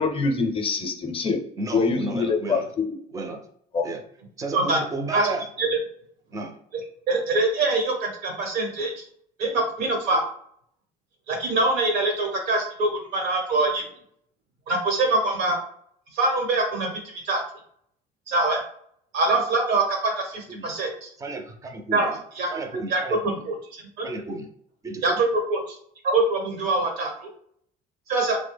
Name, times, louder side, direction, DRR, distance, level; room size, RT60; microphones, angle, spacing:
voice 1, 0.0-1.4 1.7-2.9 3.7-3.8, left 4 dB, 35° left, 0.5 m, -24 dB
voice 2, 1.6-2.7 3.1-3.4 3.8-4.0 4.4-5.5 6.3-6.5 20.5-20.7 21.2-22.2 22.5-23.4 24.0-24.5 24.8-25.2, right 2 dB, 20° right, 0.4 m, -32 dB
voice 3, 4.5-4.8 5.1-5.3 5.6-5.7 7.1-8.9 9.4-10.2 11.3-13.8 14.7-15.6 16.1-17.4 18.3-18.6 19.1-21.1 21.9-22.5 22.9-24.1 25.0-25.8 26.0-27.3 28.1-28.4, right 2 dB, 85° right, 1.0 m, -24 dB
3.2 x 2.1 x 3.3 m
cardioid pair, 110°, 17 cm